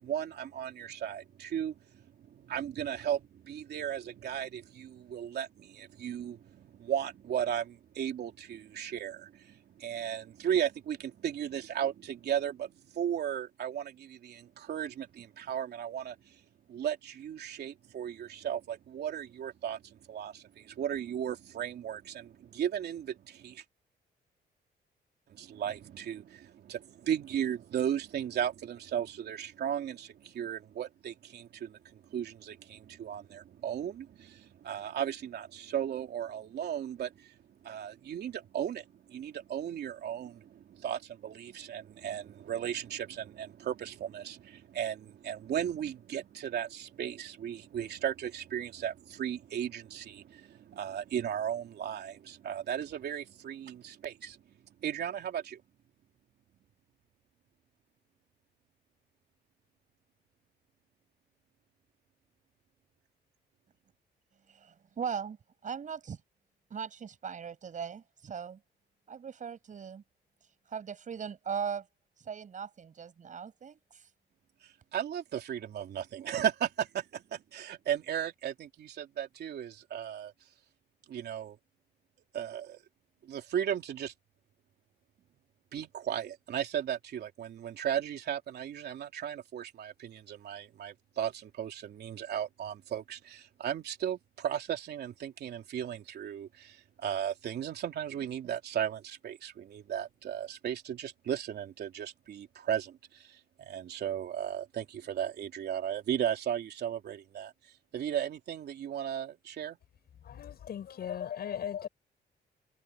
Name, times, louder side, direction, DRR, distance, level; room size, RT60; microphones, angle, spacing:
voice 1, 0.0-16.4 16.7-23.6 25.3-37.3 37.6-54.4 54.8-55.6 74.6-80.3 81.1-81.6 82.3-82.8 83.2-84.1 85.7-107.5 107.9-109.8, right 9 dB, 70° right, 3.4 m, -36 dB
voice 2, 64.5-65.4 65.6-66.2 66.7-68.6 69.1-70.0 70.7-71.9 72.2-74.1, right 7 dB, 45° right, 7.4 m, -39 dB
voice 3, 110.2-111.9, left 9 dB, 65° left, 7.3 m, -37 dB
cardioid pair, 125°, 18 cm